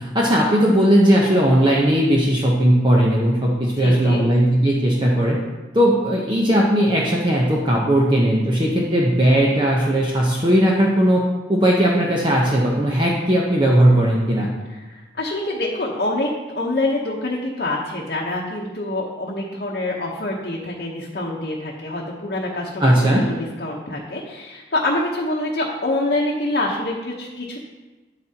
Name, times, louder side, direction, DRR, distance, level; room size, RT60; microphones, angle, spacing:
voice 1, 0.0-5.4 5.7-11.2 11.5-14.5 22.8-23.3, right 1 dB, 25° right, -4 dB, 0.9 m, -17 dB
voice 2, 3.8-4.2 14.7-27.6, left 2 dB, 55° left, -4 dB, 1.0 m, -26 dB
9.8 x 8.3 x 2.9 m, 1.2 s
head